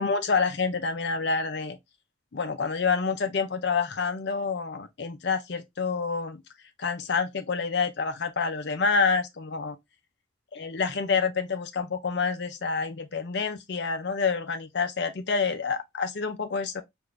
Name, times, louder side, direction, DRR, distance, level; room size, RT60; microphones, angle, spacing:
voice 1, 0.0-1.8 2.3-6.4 6.8-9.8 10.5-16.8, left 5 dB, 55° left, 0.5 m, -28 dB
3.6 x 2.5 x 3.1 m
head